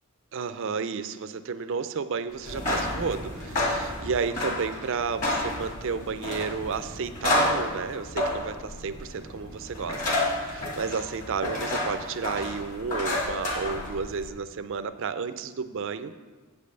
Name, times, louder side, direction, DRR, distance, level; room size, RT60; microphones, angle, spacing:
voice 1, 0.3-16.1, right 5 dB, 60° right, 11 dB, 0.4 m, -32 dB
sound 1, 2.4-14.3, left 1 dB, 35° left, 1.9 m, -30 dB
8.2 x 5.3 x 6.8 m, 1.4 s
head